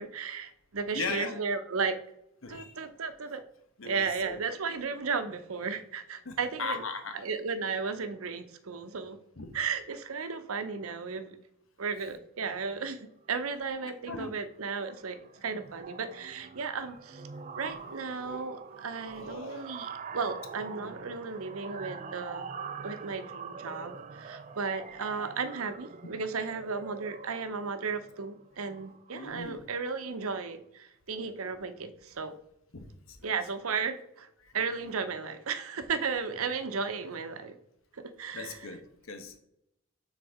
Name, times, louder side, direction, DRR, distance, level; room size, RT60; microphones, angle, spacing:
voice 1, 0.0-2.0 2.5-3.4 3.8-6.8 7.1-9.2 9.5-11.4 11.8-17.2 17.6-22.5 22.8-32.4 33.2-34.3 34.5-37.6 37.9-38.6, right 5 dB, 80° right, 0.7 m, -34 dB
voice 2, 0.9-1.3 2.4-2.8 3.8-4.4 4.7-4.8 6.2-7.2 9.4-9.5 13.8-14.3 18.2-18.3 19.1-19.7 29.1-29.6 32.7-33.2 34.4-34.5 38.3-39.4, left 4 dB, 70° left, 1.0 m, -39 dB
sound 1, 13.7-13.8 14.1-14.4 14.6-29.5, right 5 dB, 35° right, 0.3 m, -44 dB
6.3 x 4.0 x 4.8 m
head